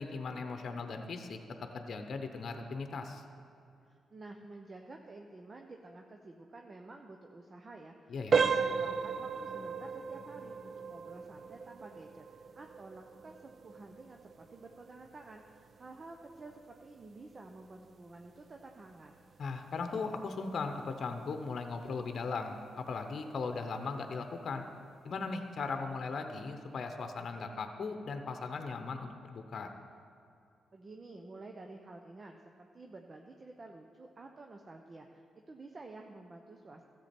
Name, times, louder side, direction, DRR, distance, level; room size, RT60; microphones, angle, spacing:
voice 1, 0.0-1.4 1.7-3.2 8.1-8.4 19.4-24.6 25.0-29.7, left 4 dB, 60° left, 6 dB, 0.8 m, -38 dB
voice 2, 3.9-19.1 30.7-36.8, right 2 dB, 40° right, 3 dB, 0.8 m, -51 dB
sound 1, 8.3-19.0 19.3-19.6 20.2-20.3 20.8-20.9, right 5 dB, 55° right, 0.4 m, -36 dB
13.0 x 7.7 x 4.4 m, 2.6 s
supercardioid pair, 55°, 0 cm